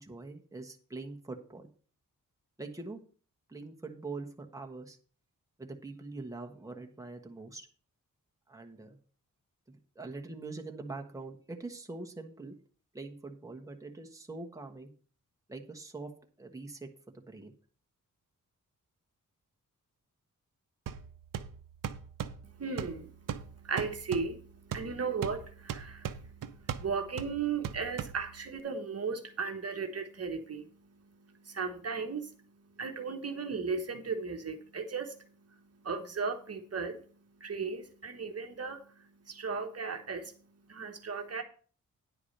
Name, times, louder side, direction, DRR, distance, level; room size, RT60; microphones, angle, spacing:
voice 1, 0.0-1.7 2.6-3.0 3.5-5.0 5.6-7.7 8.5-9.0 9.7-12.5 12.9-14.9 15.5-16.1 16.4-17.5, right 3 dB, 10° right, 3 dB, 1.2 m, -43 dB
sound 1, 20.9-28.6, right 8 dB, 75° right, 0.8 m, -41 dB
voice 2, 22.4-41.4, right 5 dB, 45° right, 5 dB, 1.2 m, -37 dB
10.0 x 4.7 x 6.6 m, 0.41 s
wide cardioid pair, 105°, 33 cm